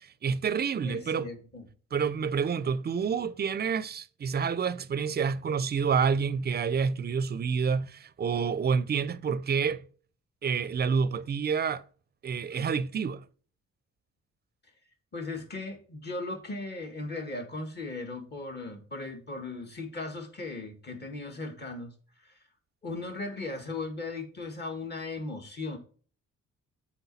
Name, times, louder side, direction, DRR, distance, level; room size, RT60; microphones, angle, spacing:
voice 1, 0.2-1.3 1.9-9.8 10.4-11.8 12.2-13.2, right 6 dB, 35° right, 0.5 m, -28 dB
voice 2, 0.8-1.7 15.1-21.9 22.2-22.3 22.8-25.8, left 3 dB, 35° left, 2.0 m, -37 dB
7.9 x 4.5 x 4.2 m
cardioid pair, 90°, 30 cm